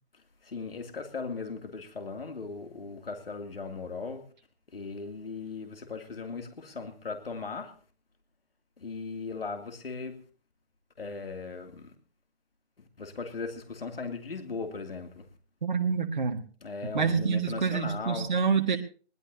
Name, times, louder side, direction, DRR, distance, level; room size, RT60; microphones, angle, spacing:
voice 1, 0.4-4.2 4.7-7.7 8.8-10.2 11.0-11.9 12.8-15.3 16.6-18.3, left 4 dB, 55° left, 6 dB, 2.7 m, -38 dB
voice 2, 15.6-16.4 16.9-18.8, right 6 dB, 40° right, 4 dB, 1.7 m, -27 dB
22.0 x 18.0 x 2.8 m, 0.39 s
figure-of-eight pair, 170°, 34 cm